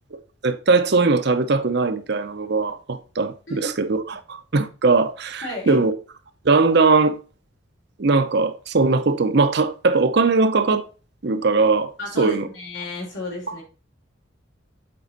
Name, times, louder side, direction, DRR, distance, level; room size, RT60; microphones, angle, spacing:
voice 1, 0.4-5.9 6.4-7.2 8.0-10.8 11.2-11.9 12.2-12.5 13.5-13.6, right 3 dB, 55° right, 0.7 m, -20 dB
voice 2, 5.4-5.8 12.0-13.6, left 1 dB, 70° left, 3.8 m, -32 dB
7.7 x 4.4 x 4.0 m
head